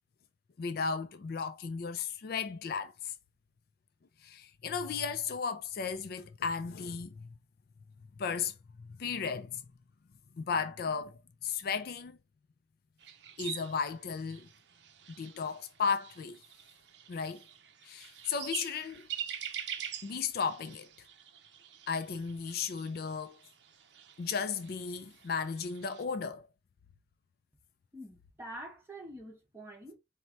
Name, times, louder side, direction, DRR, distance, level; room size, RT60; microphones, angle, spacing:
voice 1, 0.6-3.1 4.2-7.3 8.2-8.5 8.8-9.6 10.3-12.2 13.4-14.5 15.2-16.4 17.1-17.4 17.8-19.1 20.0-20.9 21.9-23.4 24.2-26.5, left 5 dB, 55° left, 0.4 m, -35 dB
sound 1, 13.0-26.0, right 9 dB, 70° right, 0.6 m, -45 dB
voice 2, 27.9-30.0, right 1 dB, 15° right, 1.2 m, -46 dB
4.4 x 2.2 x 3.9 m
head